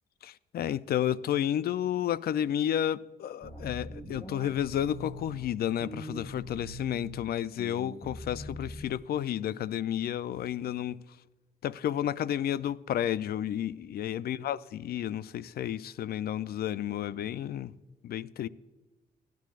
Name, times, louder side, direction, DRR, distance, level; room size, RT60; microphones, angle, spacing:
voice 1, 0.2-11.0 11.6-17.7 18.0-18.5, left 10 dB, 60° left, 0.4 m, -31 dB
sound 1, 3.4-5.4 5.8-7.2 7.6-9.2, equal, 30° left, 1.7 m, -42 dB
16.0 x 10.5 x 2.4 m
cardioid pair, 85°, 18 cm